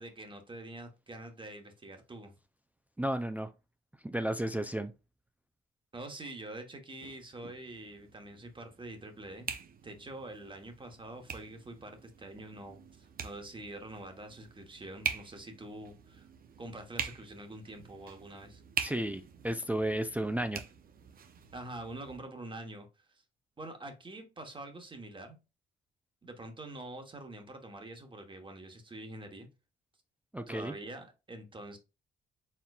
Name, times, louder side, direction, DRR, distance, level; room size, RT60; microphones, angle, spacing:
voice 1, 0.0-2.3 5.9-9.5 9.8-16.3 16.6-18.6 21.5-23.2 23.6-25.4 26.2-29.5 30.5-31.8, right 1 dB, 25° right, 1.1 m, -45 dB
voice 2, 3.0-3.5 4.0-4.9 18.8-20.6 30.3-30.7, right 1 dB, 10° right, 0.4 m, -33 dB
sound 1, 7.0-22.2, right 7 dB, 45° right, 0.7 m, -44 dB
4.4 x 3.7 x 2.3 m
cardioid pair, 90°, 20 cm